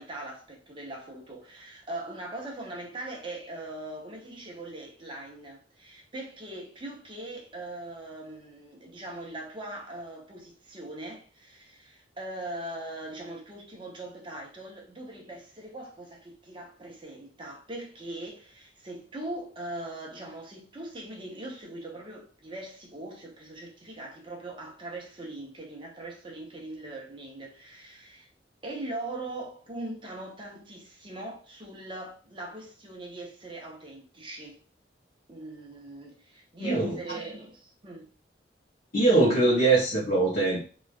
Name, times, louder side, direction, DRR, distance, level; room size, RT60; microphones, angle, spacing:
voice 1, 0.0-28.3 28.6-34.6 35.3-38.1 39.5-39.6, right 2 dB, 30° right, 0.7 m, -41 dB
voice 2, 36.6-37.0 38.9-40.6, right 2 dB, 55° left, 0.7 m, -22 dB
3.0 x 2.4 x 2.4 m
head